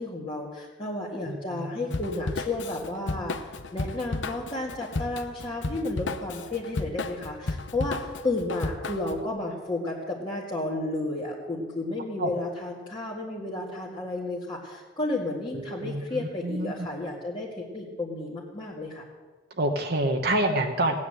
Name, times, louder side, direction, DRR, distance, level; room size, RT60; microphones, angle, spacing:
voice 1, 0.0-19.0, left 2 dB, 30° left, -5 dB, 1.9 m, -32 dB
voice 2, 1.3-2.2 12.2-12.3 15.5-16.9 19.6-21.0, right 1 dB, 60° right, 4 dB, 1.2 m, -28 dB
Drum kit / Drum, 1.9-9.2, left 3 dB, 75° left, 0.8 m, -33 dB
16.5 x 9.6 x 7.9 m, 1.4 s
head